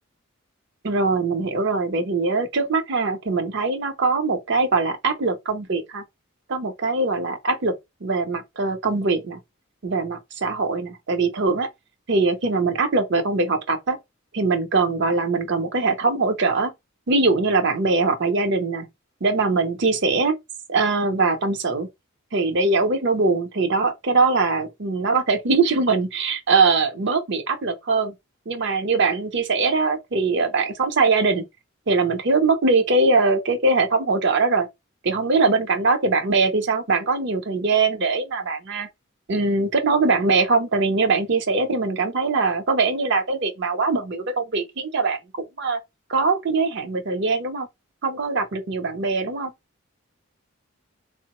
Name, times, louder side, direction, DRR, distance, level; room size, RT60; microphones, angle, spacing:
voice 1, 0.8-6.0 6.5-7.7 8.0-9.4 9.8-11.7 12.1-14.0 14.3-16.7 17.1-18.9 19.2-20.4 20.7-21.9 22.3-28.1 28.5-31.4 31.9-34.7 35.0-38.9 39.3-45.8 46.1-47.7 48.0-49.5, right 3 dB, 55° right, 0.7 m, -22 dB
3.7 x 2.0 x 2.9 m
head